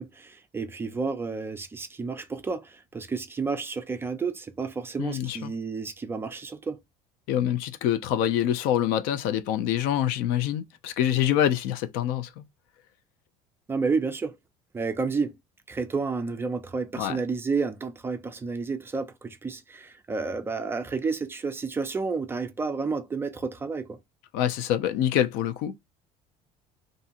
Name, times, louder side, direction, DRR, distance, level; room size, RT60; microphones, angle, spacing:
voice 1, 0.0-6.8 13.7-14.4 14.7-15.4 15.7-24.0, right 4 dB, 15° right, 0.3 m, -31 dB
voice 2, 5.0-5.5 7.3-12.4 17.0-17.2 24.3-25.7, left 11 dB, 75° left, 0.4 m, -26 dB
2.7 x 2.5 x 2.4 m
cardioid pair, 145°, 16 cm